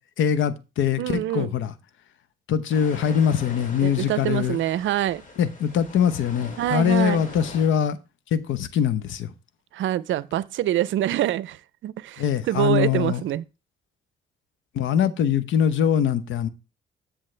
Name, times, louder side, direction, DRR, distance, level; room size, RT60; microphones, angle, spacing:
voice 1, 0.2-1.7 2.5-4.6 5.4-8.0 8.3-9.3 12.2-13.2 14.7-16.5, left 8 dB, 75° left, 0.9 m, -22 dB
voice 2, 1.0-1.5 3.8-5.2 6.6-7.2 9.7-13.4, right 13 dB, 75° right, 0.5 m, -25 dB
sound 1, 2.7-7.7, left 3 dB, 40° left, 2.8 m, -42 dB
13.5 x 6.4 x 3.3 m
cardioid pair, 90°, 20 cm